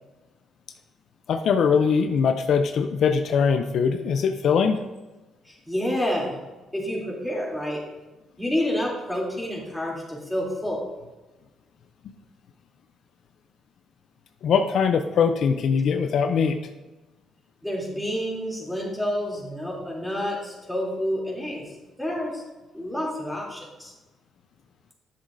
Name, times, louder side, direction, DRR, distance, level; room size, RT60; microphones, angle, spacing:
voice 1, 1.3-4.8 14.4-16.6, left 6 dB, 65° left, 7 dB, 0.5 m, -21 dB
voice 2, 5.4-6.4 6.7-7.8 8.4-10.8 17.6-21.6 22.0-22.4 22.7-23.9, equal, ahead, -4 dB, 2.9 m, -29 dB
10.5 x 7.2 x 2.6 m, 1.1 s
cardioid pair, 90°, 0 cm